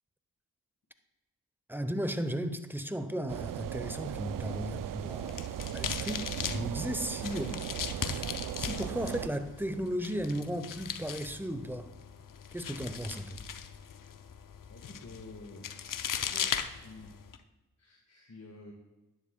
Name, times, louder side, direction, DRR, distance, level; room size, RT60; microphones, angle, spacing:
voice 1, 1.7-5.5 5.7-7.5 8.0-11.9 12.5-13.4, equal, 5° right, 10 dB, 0.9 m, -35 dB
sound 1, 3.3-9.3, right 11 dB, 60° right, 0.5 m, -37 dB
sound 2, 5.0-17.4, left 8 dB, 60° left, 0.7 m, -39 dB
voice 2, 14.7-15.7 16.2-17.2 17.8-18.7, left 2 dB, 45° left, 0 dB, 1.7 m, -50 dB
12.0 x 10.0 x 2.3 m, 1.1 s
cardioid pair, 50°, 38 cm